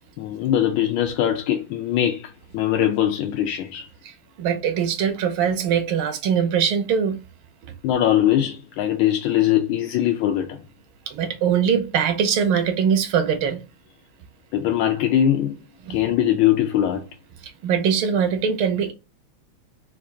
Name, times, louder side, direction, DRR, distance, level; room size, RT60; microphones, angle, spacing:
voice 1, 0.2-3.9 7.8-10.6 14.5-15.5 15.9-17.0, left 11 dB, 80° left, 1.4 m, -21 dB
voice 2, 4.0-7.2 11.1-13.6 15.9-16.0 17.6-18.9, right 7 dB, 90° right, 1.7 m, -22 dB
4.3 x 2.6 x 4.7 m
omnidirectional pair, 2.2 m